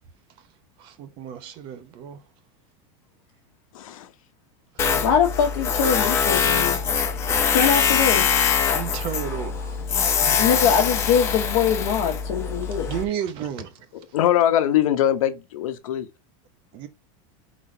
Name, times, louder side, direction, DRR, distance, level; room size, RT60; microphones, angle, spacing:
voice 1, 0.8-2.2 8.7-10.3 12.6-13.9 16.7-16.9, right 9 dB, 30° right, 0.8 m, -33 dB
voice 2, 3.7-4.1 10.2-10.4 14.1-16.1, left 11 dB, 85° left, 1.1 m, -22 dB
Tools, 4.8-13.0, left 6 dB, 15° left, 0.7 m, -23 dB
voice 3, 5.0-6.8 7.5-8.4 10.4-12.9, left 7 dB, 45° left, 1.3 m, -22 dB
4.8 x 4.0 x 4.9 m
supercardioid pair, 180°, 17 cm